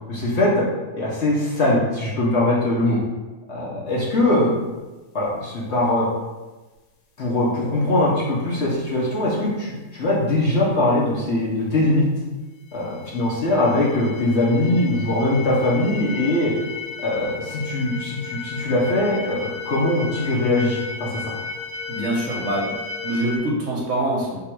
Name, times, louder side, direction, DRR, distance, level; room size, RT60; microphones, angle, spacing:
voice 1, 0.1-0.7 0.9-3.0 3.5-4.5 5.1-6.1 7.2-12.0 12.7-16.5 17.0-21.2, left 1 dB, 50° left, -5 dB, 1.0 m, -21 dB
sound 1, 12.7-23.4, left 5 dB, 85° left, 1.3 m, -34 dB
voice 2, 21.9-22.7 23.0-24.4, right 1 dB, 55° right, -3 dB, 1.1 m, -24 dB
3.5 x 3.0 x 4.6 m, 1.2 s
omnidirectional pair, 1.7 m